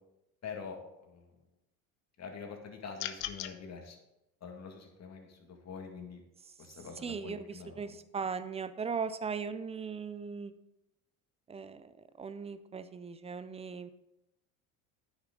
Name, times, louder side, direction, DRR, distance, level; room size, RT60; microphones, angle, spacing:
voice 1, 0.4-1.3 2.2-4.0 4.4-6.2 6.6-8.0, left 5 dB, 35° left, 3 dB, 2.0 m, -45 dB
sound 1, 3.0-3.5, left 13 dB, 60° left, 0.7 m, -37 dB
voice 2, 7.0-10.5 11.5-11.9 12.2-13.9, right 5 dB, 15° right, 13 dB, 0.4 m, -38 dB
9.8 x 6.4 x 3.7 m, 0.90 s
hypercardioid pair, 80°, 44 cm